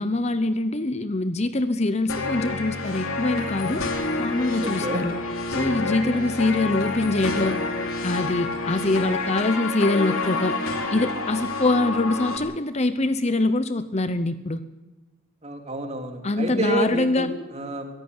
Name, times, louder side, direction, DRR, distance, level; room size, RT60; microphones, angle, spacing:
voice 1, 0.0-3.8 4.2-5.1 5.5-7.6 8.0-10.6 10.9-14.6 16.2-17.3, left 2 dB, 30° left, 12 dB, 0.7 m, -24 dB
sound 1, 2.1-12.4, left 3 dB, 75° left, 3.3 m, -28 dB
voice 2, 5.8-6.2 15.4-17.9, right 1 dB, 30° right, 4 dB, 3.0 m, -29 dB
23.0 x 15.0 x 9.7 m, 1.2 s
head